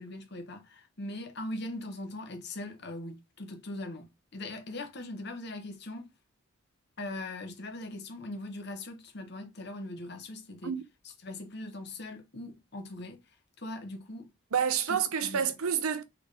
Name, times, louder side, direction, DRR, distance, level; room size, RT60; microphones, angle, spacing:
voice 1, 0.0-6.1 7.0-10.7 11.2-13.2 13.6-14.3 14.9-15.4, left 2 dB, 50° left, 1.0 m, -40 dB
voice 2, 14.5-16.0, right 7 dB, 80° right, 0.6 m, -28 dB
3.7 x 3.5 x 3.3 m
head